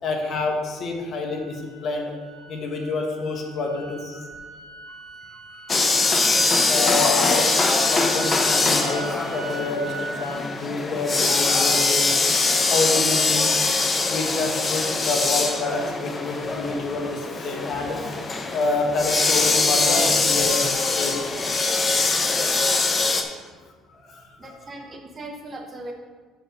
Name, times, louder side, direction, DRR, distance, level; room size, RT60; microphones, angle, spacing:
voice 1, 0.0-2.1 2.5-4.2 5.8-6.0 6.7-13.5 14.1-18.0 18.5-20.6 20.9-21.2 21.7-21.9 24.1-24.7, left 3 dB, 45° left, 1 dB, 1.4 m, -28 dB
sound 1, 1.2-10.4, right 3 dB, 75° right, 1.4 m, -39 dB
sound 2, 5.7-23.2, left 3 dB, 25° left, 0.7 m, -22 dB
voice 2, 24.4-25.9, right 2 dB, 25° right, 2 dB, 0.9 m, -38 dB
6.4 x 5.1 x 6.2 m, 1.5 s
cardioid pair, 135°, 0 cm